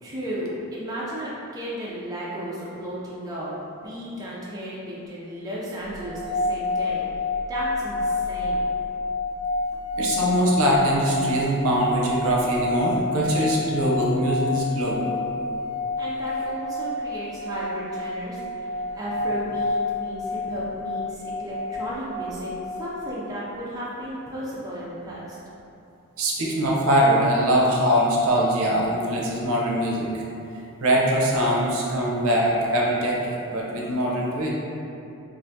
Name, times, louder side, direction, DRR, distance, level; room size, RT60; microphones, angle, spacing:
voice 1, 0.0-3.5 3.8-7.1 7.5-8.8 16.0-25.4, equal, 15° right, -7 dB, 0.3 m, -34 dB
sound 1, 6.0-23.2, left 2 dB, 75° left, 0.4 m, -29 dB
voice 2, 10.0-15.1 26.2-30.1 30.8-34.5, equal, 65° right, -3 dB, 0.5 m, -22 dB
3.3 x 2.4 x 2.6 m, 2.7 s
head